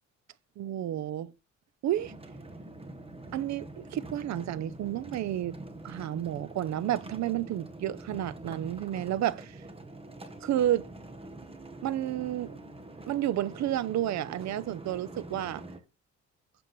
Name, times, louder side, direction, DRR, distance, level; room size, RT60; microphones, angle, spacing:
voice 1, 0.6-1.3 1.8-2.1 3.3-5.6 5.8-9.6 10.4-10.9 11.8-12.5 13.1-15.6, right 12 dB, 65° right, 0.6 m, -31 dB
sound 1, 1.9-15.8, right 2 dB, 20° right, 1.1 m, -45 dB
7.5 x 6.9 x 3.1 m
cardioid pair, 90°, 30 cm